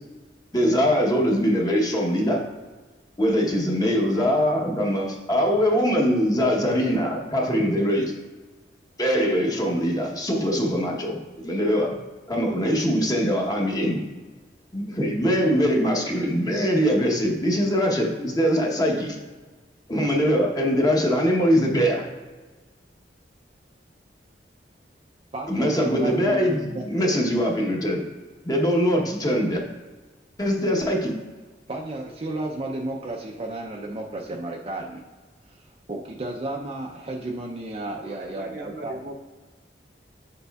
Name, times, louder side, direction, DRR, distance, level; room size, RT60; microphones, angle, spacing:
voice 1, 0.5-2.4 3.2-8.1 9.0-11.9 12.3-14.0 14.7-19.2 19.9-22.0 25.5-28.0 28.4-29.6 30.4-31.1, equal, 20° left, 0 dB, 0.9 m, -22 dB
voice 2, 25.3-26.9 31.7-35.0 35.5-35.6 35.9-39.0, right 2 dB, 35° right, 0 dB, 0.5 m, -32 dB
voice 3, 38.0-39.1, right 1 dB, 55° right, 2 dB, 0.8 m, -39 dB
7.1 x 6.7 x 2.3 m, 1.3 s
head